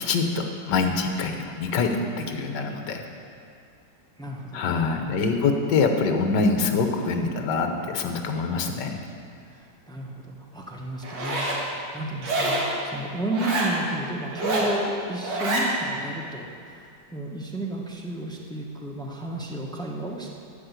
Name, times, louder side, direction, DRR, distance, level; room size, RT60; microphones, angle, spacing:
voice 1, 0.0-3.0 4.5-9.0, left 4 dB, 70° left, 5 dB, 1.5 m, -25 dB
voice 2, 4.2-4.6 5.4-5.5 9.5-20.3, right 1 dB, 5° left, -1 dB, 0.5 m, -33 dB
Zipper (clothing), 11.0-11.6 12.2-12.7 13.3-13.7 14.3-14.7 15.2-15.7, right 1 dB, 75° right, 2.3 m, -26 dB
12.5 x 5.0 x 8.1 m, 2.4 s
omnidirectional pair, 2.0 m